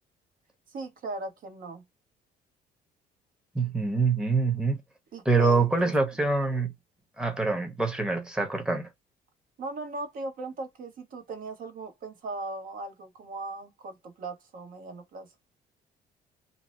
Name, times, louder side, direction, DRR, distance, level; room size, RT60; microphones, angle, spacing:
voice 1, 0.7-1.8 5.1-5.9 9.6-15.3, right 3 dB, 55° right, 1.0 m, -38 dB
voice 2, 3.5-4.8 5.2-6.7 7.2-8.9, right 4 dB, 5° right, 0.8 m, -25 dB
2.8 x 2.0 x 4.0 m
cardioid pair, 110°, 17 cm